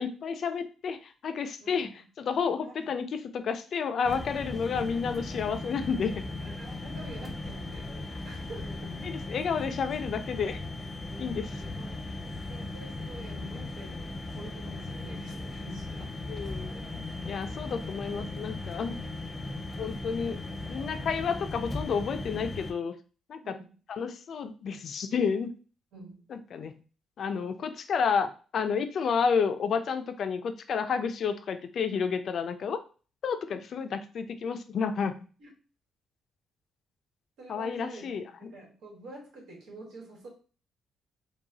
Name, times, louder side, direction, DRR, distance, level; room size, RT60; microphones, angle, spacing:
voice 1, 0.0-1.9 2.2-6.1 9.0-10.6 11.2-11.5 16.3-16.7 17.3-19.0 19.8-20.4 20.7-23.0 23.3-23.6 23.9-25.5 26.3-26.8 27.2-32.8 33.2-35.2 37.5-38.5, left 6 dB, 60° left, 0.4 m, -30 dB
sound 1, 4.0-22.7, left 2 dB, 10° left, 0.7 m, -37 dB
voice 2, 6.4-9.0 11.4-12.1 12.5-16.2 19.0-19.2 23.4-23.8 25.9-26.2 35.4-35.5 37.4-38.1 38.4-40.3, right 2 dB, 85° right, 1.5 m, -47 dB
4.7 x 2.3 x 2.8 m
cardioid pair, 90°, 0 cm